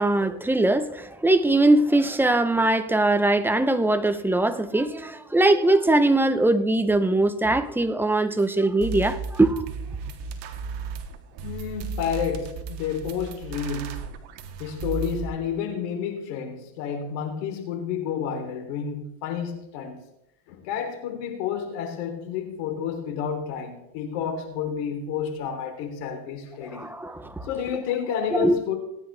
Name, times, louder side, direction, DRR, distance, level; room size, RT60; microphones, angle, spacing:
voice 1, 0.0-9.7 26.6-27.5 28.3-28.6, right 2 dB, 5° right, 0.8 m, -21 dB
sound 1, 8.4-8.5 8.8-15.2, right 5 dB, 60° right, 1.9 m, -35 dB
voice 2, 11.4-14.1 14.6-20.0 20.5-26.9 27.4-28.8, left 7 dB, 80° left, 3.5 m, -30 dB
18.5 x 10.5 x 3.4 m
supercardioid pair, 125°, 47 cm